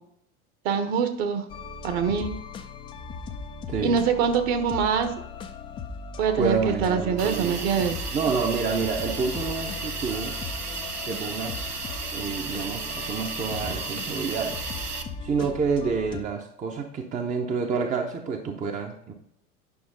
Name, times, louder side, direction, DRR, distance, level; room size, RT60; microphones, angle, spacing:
voice 1, 0.6-1.4 1.8-2.3 3.8-5.1 6.2-8.0, right 6 dB, 45° right, 7 dB, 1.3 m, -24 dB
sound 1, 1.5-16.2, left 4 dB, 10° left, 0.4 m, -38 dB
voice 2, 3.7-4.0 6.4-7.7 8.1-10.3 11.1-11.7 12.1-14.6 15.2-19.1, right 5 dB, 15° right, 4 dB, 0.7 m, -28 dB
Hiss, 7.2-15.0, right 4 dB, 90° right, 0.8 m, -34 dB
9.5 x 5.9 x 3.8 m, 0.71 s
figure-of-eight pair, 85°, 44 cm